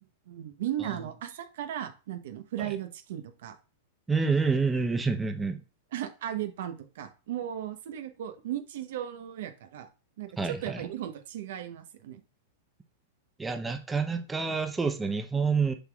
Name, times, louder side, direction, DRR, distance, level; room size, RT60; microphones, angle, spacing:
voice 1, 0.3-3.6 5.9-9.9 10.2-12.2, right 11 dB, 70° right, 0.9 m, -36 dB
voice 2, 4.1-5.6 10.4-10.8 13.4-15.7, right 4 dB, 10° right, 0.8 m, -28 dB
6.7 x 5.9 x 2.4 m
hypercardioid pair, 115°, 0 cm